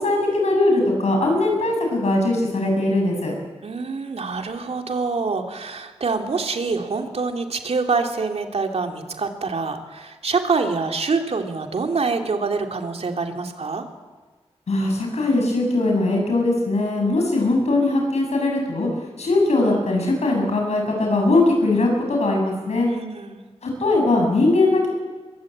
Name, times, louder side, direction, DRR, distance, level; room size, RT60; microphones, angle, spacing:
voice 1, 0.0-3.3 14.7-18.9 19.2-22.9 23.6-24.9, left 2 dB, 85° left, 1 dB, 7.9 m, -20 dB
voice 2, 3.6-13.9 22.9-23.4, right 4 dB, 70° right, 4 dB, 2.8 m, -25 dB
23.0 x 22.0 x 8.8 m, 1.4 s
wide cardioid pair, 85°, 11 cm